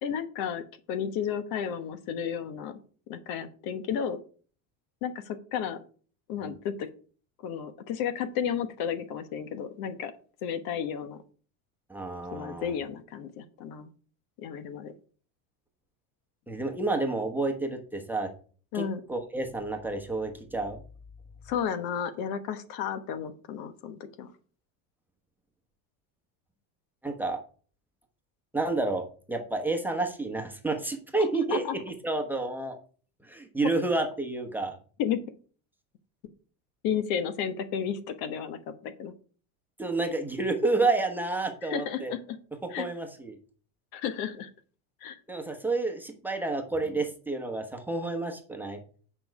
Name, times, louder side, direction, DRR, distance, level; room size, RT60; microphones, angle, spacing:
voice 1, 0.0-2.8 3.1-4.2 5.0-5.8 6.3-6.9 7.4-10.1 10.4-11.2 12.3-13.9 14.4-14.9 18.7-19.0 21.5-24.3 31.3-31.7 35.0-35.2 36.8-39.1 41.6-42.2 42.7-42.9 43.9-44.5 45.0-45.2, left 8 dB, 60° left, 11 dB, 1.2 m, -32 dB
voice 2, 11.9-12.7 16.5-18.3 18.7-18.8 19.1-20.8 27.0-27.4 28.5-32.8 33.2-34.8 39.8-42.1 42.6-43.4 45.3-48.8, right 3 dB, 5° right, 3 dB, 1.1 m, -30 dB
8.7 x 5.5 x 4.7 m, 0.41 s
cardioid pair, 140°, 41 cm